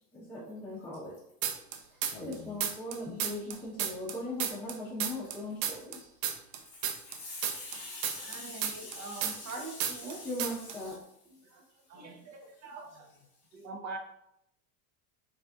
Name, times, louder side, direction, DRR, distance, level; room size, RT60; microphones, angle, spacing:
voice 1, 0.1-1.2 1.9-6.1 10.2-11.0, left 1 dB, 5° left, -8 dB, 0.7 m, -39 dB
sound 1, 1.4-2.3 2.6-5.4 5.6-9.5 9.8-10.1 10.4-10.8, right 9 dB, 80° right, 0.6 m, -32 dB
voice 2, 2.1-2.5 6.7-10.3, left 2 dB, 55° left, -2 dB, 0.7 m, -44 dB
voice 3, 8.1-10.2 11.4-13.1 13.5-14.0, right 3 dB, 35° right, 3 dB, 0.6 m, -44 dB
4.0 x 2.5 x 2.3 m, 0.77 s
supercardioid pair, 130°, 47 cm